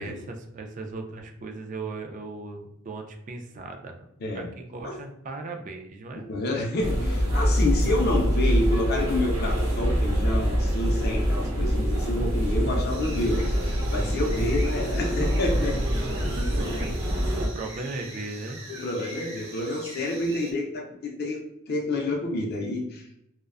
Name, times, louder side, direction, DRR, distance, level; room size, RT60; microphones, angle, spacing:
voice 1, 0.0-4.0 4.3-6.2 16.0-18.6, right 3 dB, 40° right, 4 dB, 0.3 m, -37 dB
voice 2, 6.1-15.9 18.7-23.1, left 1 dB, 50° left, 1 dB, 0.4 m, -29 dB
sound 1, 6.8-17.5, equal, 90° right, 0.7 m, -25 dB
sound 2, 12.9-20.5, right 2 dB, 55° right, 0.9 m, -43 dB
2.5 x 2.1 x 2.4 m, 0.76 s
head